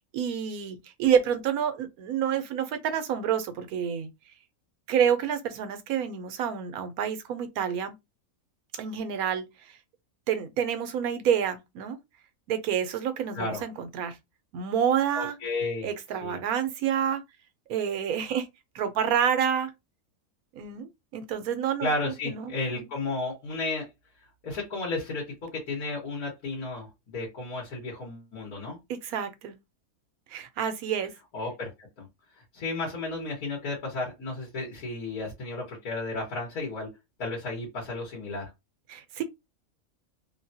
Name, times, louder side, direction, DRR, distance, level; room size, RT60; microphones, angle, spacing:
voice 1, 0.0-4.1 4.9-7.9 8.8-9.8 10.3-12.0 12.5-14.2 14.5-15.4 15.8-17.2 17.7-18.5 18.7-19.7 20.5-22.9 28.9-29.6 30.3-31.1 38.9-39.2, right 8 dB, 85° right, 1.1 m, -28 dB
voice 2, 15.1-15.9 16.2-16.4 21.8-23.9 24.4-26.9 27.1-28.8 31.3-31.7 32.0-32.1 32.5-36.9 37.2-38.5, left 2 dB, 85° left, 1.8 m, -33 dB
3.5 x 2.2 x 2.7 m
omnidirectional pair, 1.5 m